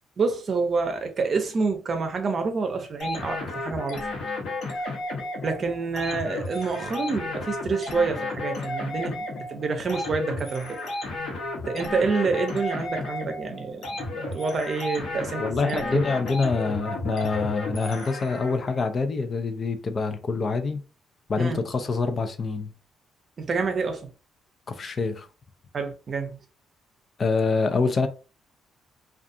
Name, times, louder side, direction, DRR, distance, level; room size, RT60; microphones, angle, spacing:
voice 1, 0.2-4.0 5.4-10.8 11.7-16.0 21.4-21.6 23.4-24.0 25.7-26.4, right 4 dB, 45° right, 0.6 m, -28 dB
sound 1, 3.0-18.7, left 2 dB, 70° left, 1.0 m, -33 dB
voice 2, 15.4-20.8 21.3-22.7 24.7-25.3 27.2-28.1, left 4 dB, 40° left, 0.4 m, -26 dB
2.4 x 2.3 x 2.6 m
cardioid pair, 90°, 0 cm